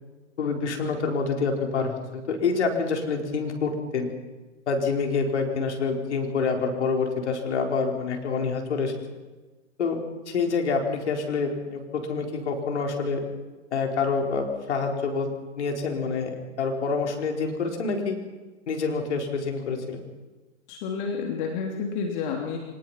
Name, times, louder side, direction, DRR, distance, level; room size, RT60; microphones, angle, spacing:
voice 1, 0.4-4.1 4.7-8.9 9.8-10.0 10.3-13.2 13.7-15.3 15.6-18.2 18.7-20.0, left 4 dB, 65° left, 2 dB, 4.8 m, -27 dB
voice 2, 20.7-22.6, left 5 dB, 40° left, 1 dB, 3.1 m, -30 dB
25.0 x 19.5 x 5.9 m, 1.3 s
hypercardioid pair, 120°, 37 cm